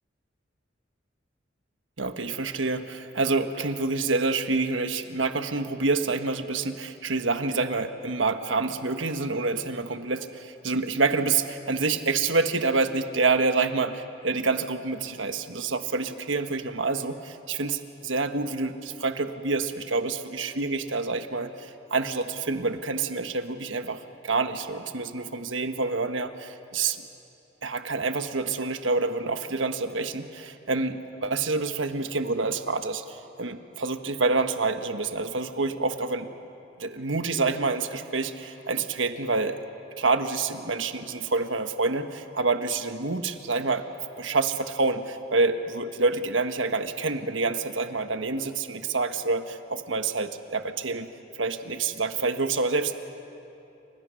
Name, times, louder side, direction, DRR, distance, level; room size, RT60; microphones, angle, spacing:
voice 1, 2.0-27.1 27.6-36.3 36.8-39.6 40.0-43.8 44.2-51.1 51.3-52.9, right 3 dB, 90° right, 8 dB, 1.3 m, -27 dB
29.0 x 25.0 x 6.4 m, 2.9 s
head